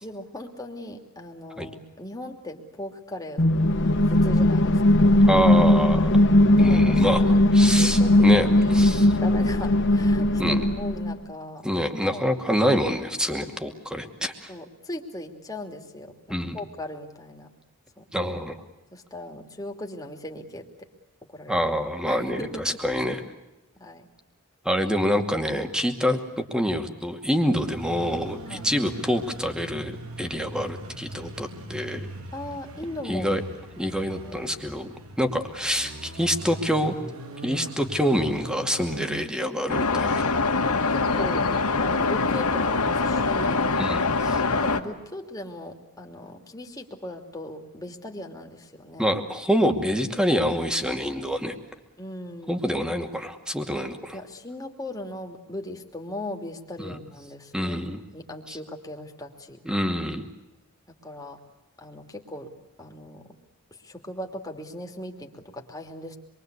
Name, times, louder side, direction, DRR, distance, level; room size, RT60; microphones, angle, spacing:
voice 1, 0.0-3.5 3.8-5.1 6.5-7.4 7.7-8.7 9.2-11.7 12.1-12.2 14.5-17.5 18.0-18.1 18.9-20.9 21.3-21.7 22.1-22.8 23.8-24.1 28.5-28.7 32.3-33.3 34.1-34.4 39.9-40.2 40.9-43.7 44.5-49.1 52.0-52.6 54.1-59.6 61.0-61.4 61.8-62.5 62.8-63.3 63.7-66.2, left 1 dB, 15° left, 3 dB, 3.0 m, -38 dB
sound 1, 3.4-11.2, left 1 dB, 55° left, 1.2 m, -19 dB
voice 2, 5.3-6.2 6.6-7.2 7.5-9.1 10.4-10.7 11.6-14.5 16.3-16.6 18.1-18.6 21.5-23.2 24.6-32.1 33.0-33.4 33.8-34.9 35.2-36.9 37.4-40.2 43.7-44.4 49.0-51.6 52.5-54.2 56.8-57.0 57.5-58.0 58.5-58.6 59.6-60.3, equal, 5° right, 5 dB, 2.4 m, -26 dB
sound 2, 27.5-39.3, right 1 dB, 70° right, 3.0 m, -40 dB
sound 3, 39.7-44.8, left 3 dB, 85° left, 2.1 m, -24 dB
27.0 x 23.5 x 8.3 m, 1.0 s
head